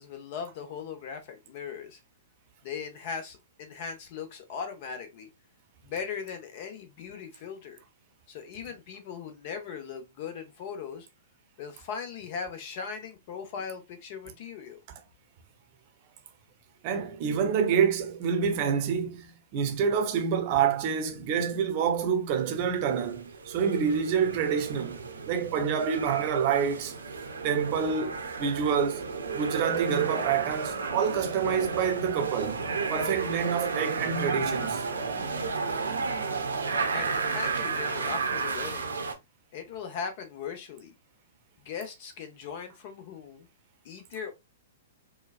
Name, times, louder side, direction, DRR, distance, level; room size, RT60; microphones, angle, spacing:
voice 1, 0.0-2.0 2.6-5.3 5.8-7.8 8.3-11.1 11.6-14.8 36.9-38.9 39.5-40.9 41.6-43.5 43.8-44.3, left 6 dB, 45° left, 0.9 m, -39 dB
voice 2, 16.8-25.0 25.3-26.9 27.4-29.0 29.3-34.8, right 7 dB, 40° right, 0.7 m, -27 dB
sound 1, 23.0-39.1, right 4 dB, 75° right, 0.8 m, -32 dB
4.3 x 2.3 x 2.3 m
figure-of-eight pair, 110°, 0 cm